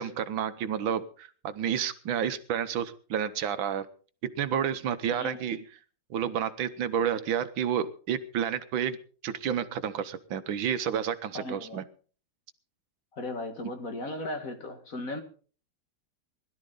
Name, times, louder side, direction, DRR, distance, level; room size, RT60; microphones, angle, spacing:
voice 1, 0.0-3.9 4.4-5.6 6.1-11.8, right 8 dB, 80° right, 1.7 m, -30 dB
voice 2, 5.1-5.4 11.3-11.8 13.1-15.2, left 2 dB, 45° left, 2.0 m, -36 dB
20.5 x 12.5 x 3.8 m
omnidirectional pair, 2.1 m